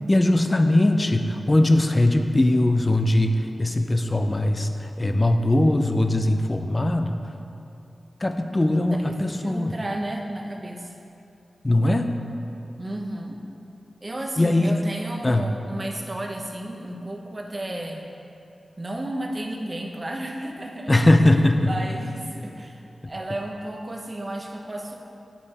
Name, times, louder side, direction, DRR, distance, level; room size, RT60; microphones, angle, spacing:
voice 1, 0.1-7.2 8.2-9.7 11.6-12.1 14.4-14.8 15.2-15.4 20.9-21.7, left 1 dB, 25° left, 6 dB, 0.5 m, -20 dB
voice 2, 8.9-10.9 12.8-13.4 14.0-18.1 18.8-21.0 21.6-22.8 23.1-25.0, right 1 dB, 30° right, 1 dB, 0.8 m, -33 dB
8.5 x 5.2 x 4.2 m, 2.7 s
wide cardioid pair, 80°, 0 cm